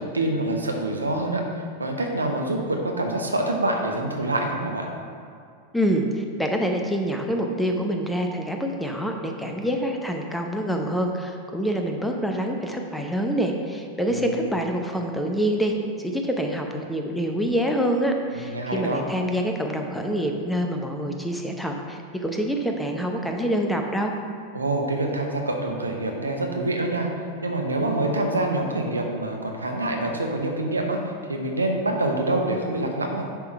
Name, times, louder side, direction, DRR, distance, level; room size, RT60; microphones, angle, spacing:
voice 1, 0.0-1.4 1.8-4.9 14.1-14.4 18.3-19.0 24.5-27.1 27.4-31.0 31.3-33.2, right 2 dB, 80° right, 2 dB, 0.9 m, -26 dB
voice 2, 5.7-24.1, equal, 5° left, 3 dB, 0.7 m, -26 dB
10.0 x 3.6 x 4.6 m, 2.4 s
figure-of-eight pair, 90°, 0 cm